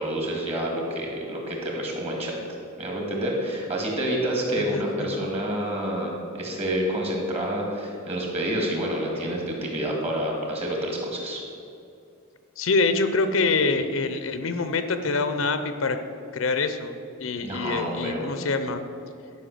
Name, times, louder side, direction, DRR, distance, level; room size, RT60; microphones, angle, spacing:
voice 1, 0.0-2.4 2.8-11.4 17.4-18.3, right 1 dB, 30° right, -1 dB, 2.1 m, -28 dB
voice 2, 4.7-5.2 12.6-16.0 16.3-16.9 17.2-18.8, left 3 dB, 75° left, 9 dB, 0.7 m, -25 dB
11.5 x 5.4 x 6.7 m, 2.5 s
head